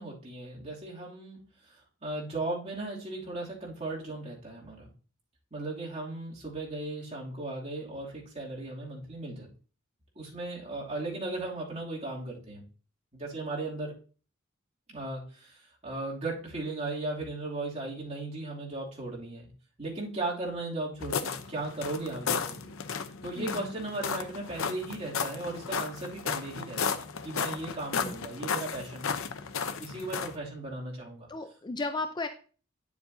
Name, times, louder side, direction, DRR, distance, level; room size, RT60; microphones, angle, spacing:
voice 1, 0.0-1.4 1.7-1.8 2.0-4.9 5.5-9.5 10.2-12.6 13.1-14.0 14.9-19.5 19.8-22.7 23.2-29.2 29.8-31.3, right 2 dB, 35° right, -4 dB, 2.7 m, -37 dB
sound 1, 21.0-30.4, left 6 dB, 80° left, 0.7 m, -34 dB
voice 2, 31.3-32.3, left 3 dB, 20° left, 7 dB, 0.5 m, -34 dB
9.6 x 7.2 x 2.7 m, 0.38 s
head